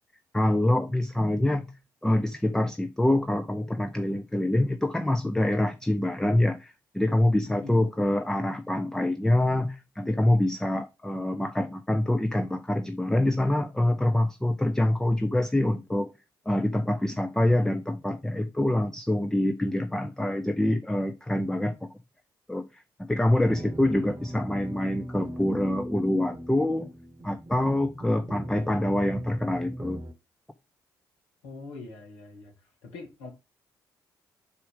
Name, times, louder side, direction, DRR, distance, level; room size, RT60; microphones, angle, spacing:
voice 1, 0.3-1.7 2.0-16.1 16.5-21.9 22.5-26.9 27.2-30.0, left 1 dB, 5° left, 0.5 m, -25 dB
voice 2, 7.5-7.8 31.4-32.5 32.8-33.3, left 3 dB, 70° left, 1.4 m, -42 dB
sound 1, 23.4-30.1, equal, 30° right, 1.1 m, -39 dB
5.1 x 4.3 x 4.9 m
figure-of-eight pair, 40°, 10 cm